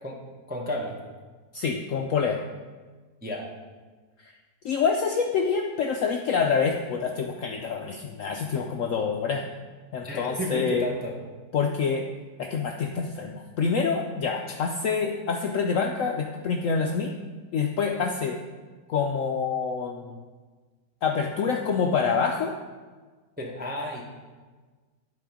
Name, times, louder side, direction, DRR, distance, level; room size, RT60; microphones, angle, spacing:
voice 1, 0.5-0.9 3.2-3.4 10.0-11.1 14.5-14.6 23.4-24.0, left 1 dB, 10° right, -1 dB, 0.5 m, -32 dB
voice 2, 1.5-2.4 4.2-4.3 4.6-9.5 9.9-10.9 11.5-12.1 12.4-17.1 17.5-18.4 18.9-20.2 21.0-22.6, left 5 dB, 70° left, 3 dB, 0.7 m, -26 dB
11.0 x 4.2 x 5.0 m, 1.4 s
omnidirectional pair, 1.8 m